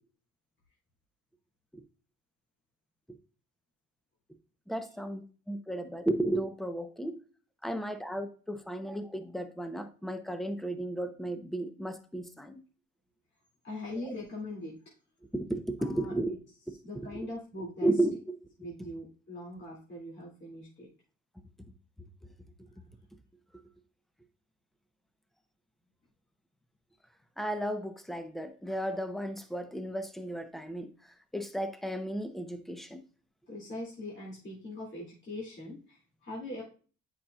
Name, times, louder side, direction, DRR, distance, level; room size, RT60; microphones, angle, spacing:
voice 1, 4.7-7.2 7.6-12.6 15.3-16.3 17.0-17.1 17.8-18.4 27.4-30.9 31.3-33.0, right 1 dB, ahead, 8 dB, 0.9 m, -34 dB
voice 2, 13.6-14.8 15.8-16.1 16.8-17.9 18.6-20.9 33.5-36.6, left 1 dB, 40° left, -5 dB, 2.6 m, -41 dB
8.5 x 5.7 x 2.4 m, 0.38 s
cardioid pair, 90°, 30 cm